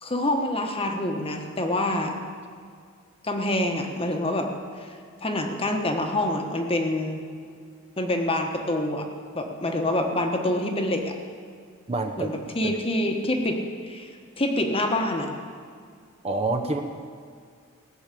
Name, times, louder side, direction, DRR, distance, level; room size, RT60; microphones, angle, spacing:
voice 1, 0.0-2.2 3.2-4.5 4.8-7.3 8.0-9.1 9.3-11.1 12.2-14.1 14.4-15.3, left 1 dB, 25° left, 3 dB, 1.2 m, -26 dB
voice 2, 11.9-12.3 12.6-12.7 16.2-16.8, right 2 dB, 30° right, 4 dB, 0.9 m, -27 dB
17.0 x 6.5 x 8.4 m, 2.2 s
head